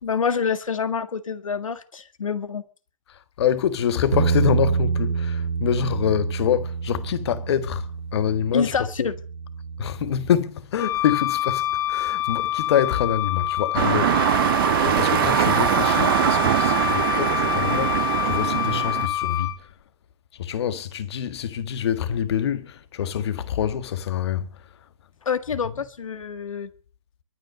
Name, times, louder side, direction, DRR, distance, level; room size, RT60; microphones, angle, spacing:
voice 1, 0.0-2.6 8.5-9.1 25.3-26.7, left 6 dB, 75° left, 1.9 m, -26 dB
voice 2, 3.1-9.1 9.8-19.7 20.3-24.6, left 9 dB, 50° left, 1.7 m, -26 dB
Bass guitar, 4.1-10.4, right 5 dB, 85° right, 2.4 m, -27 dB
Wind instrument woodwind instrument, 10.8-19.6, left 13 dB, 20° left, 1.7 m, -26 dB
sound 1, 13.7-19.1, right 14 dB, 40° right, 0.8 m, -22 dB
23.0 x 9.2 x 6.6 m
hypercardioid pair, 135°, 17 cm